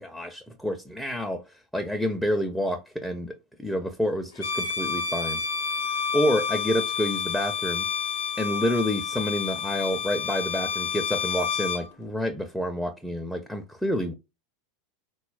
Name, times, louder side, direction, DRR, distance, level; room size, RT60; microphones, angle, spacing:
voice 1, 0.0-1.4 1.7-3.3 3.6-5.4 6.1-7.8 8.4-14.1, equal, ahead, 0.4 m, -28 dB
Bowed string instrument, 4.4-11.9, left 6 dB, 75° left, 0.5 m, -29 dB
3.9 x 2.1 x 2.3 m
hypercardioid pair, 85°, 0 cm